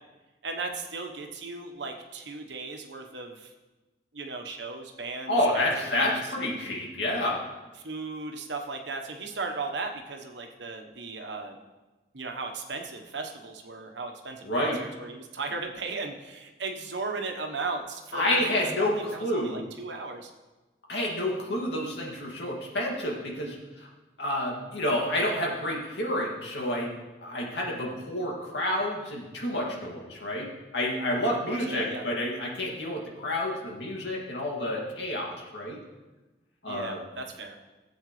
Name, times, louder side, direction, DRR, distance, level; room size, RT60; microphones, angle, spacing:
voice 1, 0.4-3.5 4.1-5.4 5.9-6.2 7.8-11.6 12.1-20.3 31.3-32.1 36.7-37.6, right 3 dB, 90° right, 4 dB, 1.2 m, -36 dB
voice 2, 5.3-7.4 14.4-14.8 18.1-19.6 20.9-23.9 24.2-26.9 27.2-35.8 36.6-37.0, left 1 dB, 80° left, -2 dB, 2.4 m, -29 dB
16.0 x 8.0 x 3.3 m, 1.2 s
head